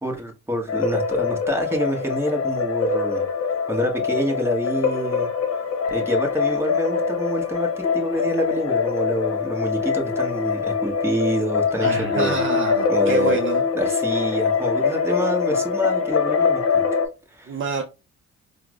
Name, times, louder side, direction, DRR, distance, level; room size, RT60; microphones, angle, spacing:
voice 1, 0.0-3.2 3.7-5.3 5.9-12.4 12.9-13.4 13.7-16.8 17.3-17.6, equal, 10° right, 1.0 m, -27 dB
sound 1, 0.7-17.1, left 5 dB, 50° left, 0.8 m, -23 dB
voice 2, 11.8-13.6 17.5-17.8, right 4 dB, 40° right, 0.5 m, -26 dB
4.5 x 2.1 x 2.3 m
cardioid pair, 90°, 30 cm